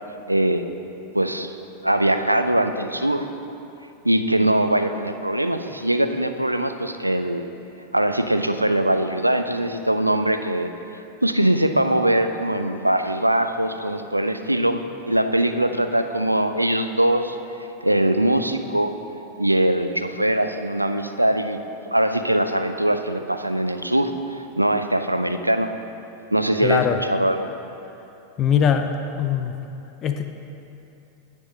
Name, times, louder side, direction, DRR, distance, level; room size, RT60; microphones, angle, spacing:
voice 1, 0.3-0.6 1.1-1.5 1.8-3.3 4.0-7.5 7.9-10.7 11.2-14.8 15.1-17.4 17.8-18.9 19.4-21.6 21.9-25.7 26.3-27.5, right 1 dB, 85° right, 8 dB, 0.4 m, -21 dB
voice 2, 26.6-27.0 28.4-29.5 30.0-30.2, left 8 dB, 30° left, 6 dB, 0.4 m, -21 dB
9.8 x 3.6 x 6.5 m, 2.9 s
figure-of-eight pair, 90°, 0 cm